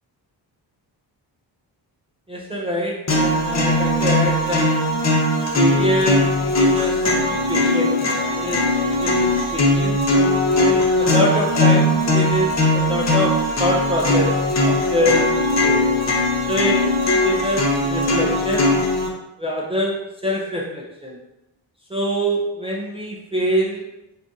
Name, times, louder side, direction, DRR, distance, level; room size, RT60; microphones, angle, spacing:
voice 1, 2.3-4.7 5.6-10.0 10.6-14.3 14.6-15.9 16.5-16.8 17.0-18.7 19.4-21.2 21.9-23.9, equal, 15° right, -3 dB, 0.3 m, -25 dB
sound 1, 3.1-19.1, left 1 dB, 40° left, 0.6 m, -19 dB
3.7 x 2.4 x 3.8 m, 0.91 s
wide cardioid pair, 175°, 44 cm